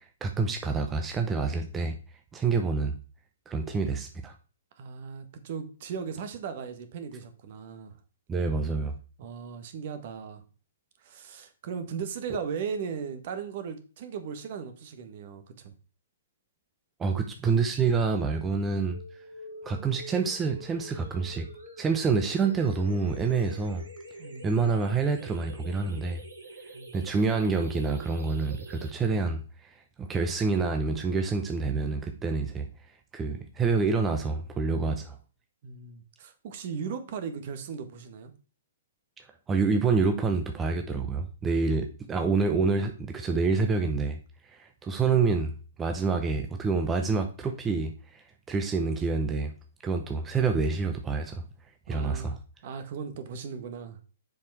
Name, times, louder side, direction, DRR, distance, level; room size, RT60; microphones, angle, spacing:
voice 1, 0.2-2.0 2.3-3.0 3.5-4.3 8.3-8.9 17.0-19.0 19.6-21.5 21.8-23.8 24.4-26.2 26.9-32.7 33.1-35.2 39.5-44.2 44.4-45.5 45.8-49.5 49.8-51.4 51.9-52.4, right 4 dB, 15° right, 5 dB, 0.8 m, -27 dB
voice 2, 4.8-8.0 9.2-10.4 11.0-15.7 24.2-24.5 26.7-26.9 35.6-38.3 51.9-52.4 52.6-54.0, right 6 dB, 50° right, 8 dB, 1.4 m, -37 dB
sound 1, 18.9-28.9, right 1 dB, 80° right, 2.5 m, -46 dB
7.1 x 5.1 x 4.7 m, 0.37 s
hypercardioid pair, 130°, 0 cm